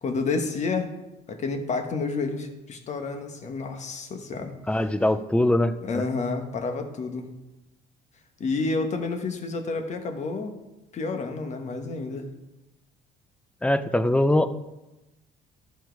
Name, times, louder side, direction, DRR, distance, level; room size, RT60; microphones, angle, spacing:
voice 1, 0.0-0.9 1.3-4.5 5.8-7.3 8.4-10.5 10.9-12.3, left 3 dB, 45° left, 6 dB, 1.2 m, -29 dB
voice 2, 4.7-6.1 13.6-14.5, left 1 dB, 5° left, 13 dB, 0.5 m, -22 dB
13.0 x 4.5 x 4.6 m, 1.0 s
cardioid pair, 110°, 17 cm